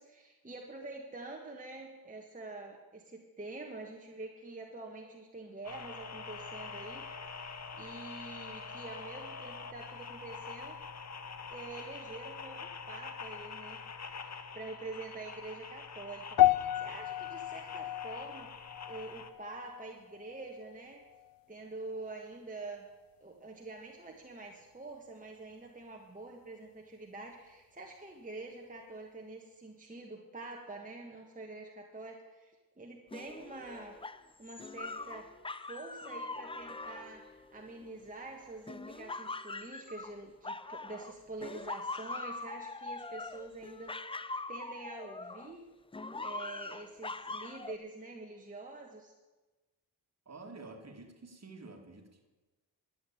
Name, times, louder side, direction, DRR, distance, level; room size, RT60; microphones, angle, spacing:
voice 1, 0.0-7.0 7.8-10.8 11.5-13.8 14.1-18.5 18.9-21.0 21.5-22.9 23.2-34.0 34.4-35.2 35.5-44.1 44.5-45.6 46.2-49.1, right 2 dB, 20° right, 0 dB, 1.6 m, -46 dB
sound 1, 5.6-19.3, left 5 dB, 40° left, 1.1 m, -45 dB
sound 2, 16.4-20.8 21.0-21.4 22.1-22.2, left 14 dB, 60° left, 0.5 m, -32 dB
sound 3, 33.1-38.1 38.7-41.1 41.4-45.6 45.9-47.8, left 3 dB, 15° left, 0.5 m, -42 dB
voice 2, 50.3-52.3, right 3 dB, 40° right, 3 dB, 2.4 m, -49 dB
11.5 x 8.3 x 8.6 m, 1.2 s
cardioid pair, 85°, 39 cm